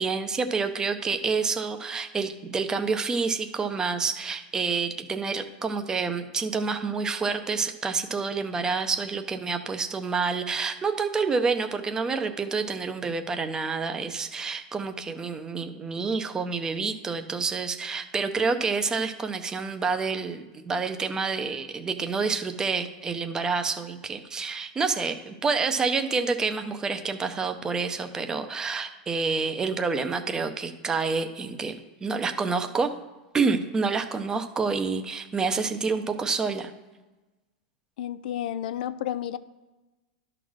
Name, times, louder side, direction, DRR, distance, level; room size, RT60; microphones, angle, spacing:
voice 1, 0.0-32.9 33.3-36.7, right 4 dB, 15° right, 7 dB, 0.7 m, -28 dB
voice 2, 38.0-39.4, left 11 dB, 70° left, 15 dB, 0.5 m, -31 dB
11.5 x 4.0 x 6.3 m, 1.1 s
supercardioid pair, 150°, 5 cm